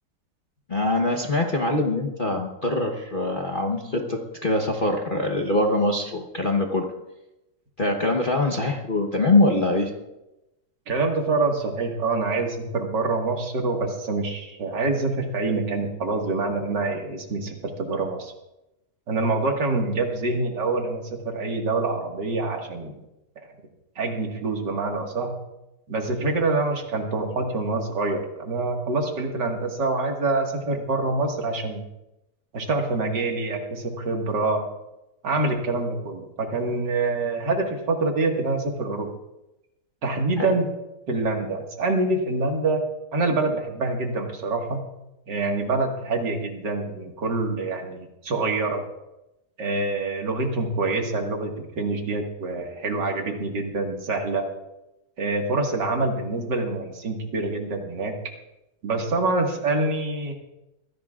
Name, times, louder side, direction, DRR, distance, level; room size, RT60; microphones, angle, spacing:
voice 1, 0.7-6.9 7.8-9.9 40.4-40.5, left 2 dB, 35° left, 1 dB, 1.2 m, -23 dB
voice 2, 10.9-18.3 19.1-22.9 24.0-25.3 25.9-31.8 32.5-34.6 35.2-39.1 40.0-40.7 41.1-42.8 43.1-44.8 45.3-48.8 49.6-54.4 55.2-58.1 58.8-60.3, right 3 dB, 75° right, 2 dB, 2.6 m, -26 dB
24.0 x 16.0 x 2.5 m, 0.94 s
omnidirectional pair, 1.9 m